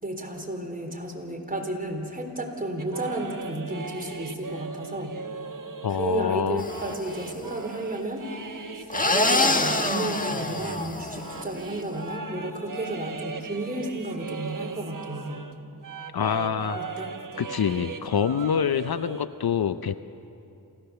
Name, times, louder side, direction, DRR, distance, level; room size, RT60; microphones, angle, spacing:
voice 1, 0.0-5.2 5.9-8.2 8.8-15.4 16.8-17.2, right 1 dB, 20° right, 3 dB, 3.7 m, -32 dB
sound 1, 2.8-15.6 15.8-19.2, right 4 dB, 50° right, 1.3 m, -38 dB
voice 2, 5.8-6.6 16.1-16.8 17.4-19.9, left 7 dB, 65° left, 12 dB, 0.7 m, -26 dB
sound 2, 6.6-7.3 8.9-11.5, left 2 dB, 20° left, 1.4 m, -26 dB
28.0 x 16.5 x 7.0 m, 2.6 s
cardioid pair, 60°, 41 cm